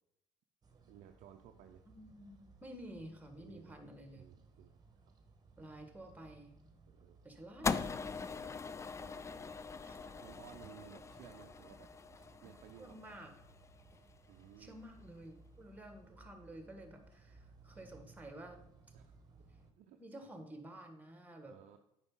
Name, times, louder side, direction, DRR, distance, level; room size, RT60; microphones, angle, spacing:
sound 1, 0.6-19.7, right 3 dB, 25° right, 1.2 m, -62 dB
voice 1, 0.9-1.8 3.4-3.7 4.2-4.7 6.9-7.2 9.0-9.3 10.2-11.9 12.4-13.2 14.3-14.8 18.9-19.1 19.8-20.0 21.4-21.8, right 10 dB, 55° right, 4 dB, 0.6 m, -57 dB
voice 2, 2.0-4.3 5.6-6.6 7.2-8.0 9.0-9.2 9.8-10.0 12.8-13.3 14.6-18.6 20.0-21.5, right 1 dB, 10° right, 6 dB, 1.5 m, -51 dB
sound 2, 7.6-14.0, left 4 dB, 20° left, 0.4 m, -41 dB
8.7 x 5.2 x 3.7 m, 0.80 s
hypercardioid pair, 65°, 15 cm